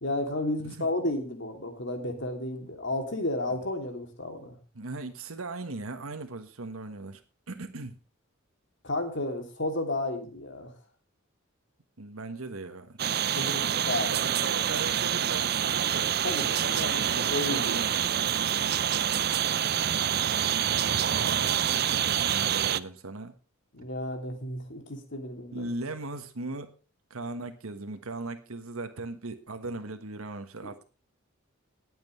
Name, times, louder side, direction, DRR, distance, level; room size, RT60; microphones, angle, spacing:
voice 1, 0.0-4.6 8.8-10.7 13.3-14.3 16.2-17.9 23.7-25.7 30.6-30.7, left 1 dB, 55° left, 4 dB, 2.9 m, -32 dB
voice 2, 4.7-7.2 7.5-8.0 12.0-13.0 13.4-13.5 14.1-16.1 16.7-16.8 17.0-18.1 21.1-23.3 25.5-26.7 27.1-30.8, right 2 dB, 85° right, 7 dB, 1.4 m, -38 dB
sound 1, 13.0-22.8, right 9 dB, 50° right, 0.5 m, -27 dB
20.5 x 8.0 x 3.2 m, 0.34 s
head